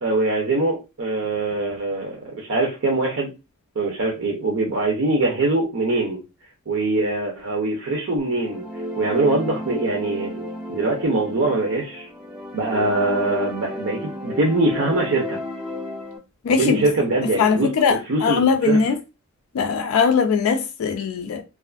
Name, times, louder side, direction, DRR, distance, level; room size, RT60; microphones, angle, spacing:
voice 1, 0.0-3.3 3.8-6.2 6.7-8.6 9.0-10.4 10.7-12.1 12.5-15.4 16.6-17.7 18.1-18.8, right 2 dB, 65° right, 0.6 m, -23 dB
sound 1, 8.3-16.2, left 1 dB, 5° right, 0.4 m, -32 dB
voice 2, 16.4-16.8 17.4-19.0 19.5-21.4, left 5 dB, 75° left, 0.3 m, -20 dB
2.5 x 2.4 x 2.3 m
head